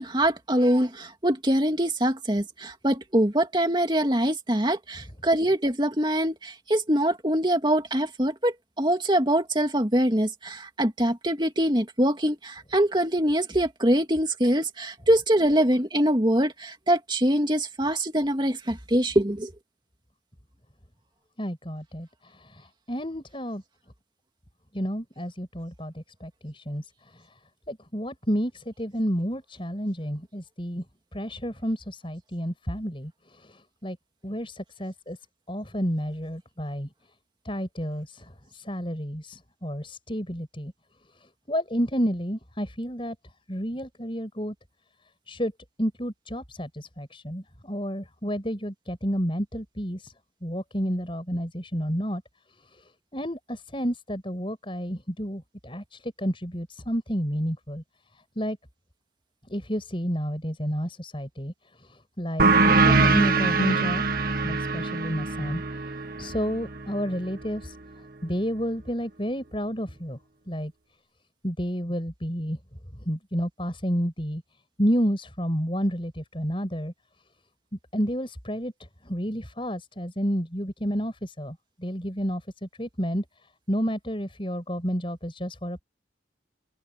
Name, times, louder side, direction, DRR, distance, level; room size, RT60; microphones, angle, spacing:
voice 1, 0.0-19.5, right 1 dB, 25° right, 2.4 m, -24 dB
voice 2, 21.4-23.6 24.7-27.3 27.7-30.8 31.1-34.0 34.2-35.2 35.5-36.9 37.4-40.7 41.2-43.2 43.5-44.5 45.3-45.5 45.8-50.1 50.4-52.2 52.7-52.8 53.1-57.8 58.4-58.6 59.5-61.5 61.8-64.0 64.4-65.6 66.2-67.8 68.2-70.2 70.5-70.7 71.4-72.6 73.0-74.4 74.8-76.9 77.9-78.7 79.0-83.3 83.7-85.8, equal, 30° left, 7.0 m, -30 dB
sound 1, 62.4-67.6, right 3 dB, 50° right, 2.1 m, -23 dB
head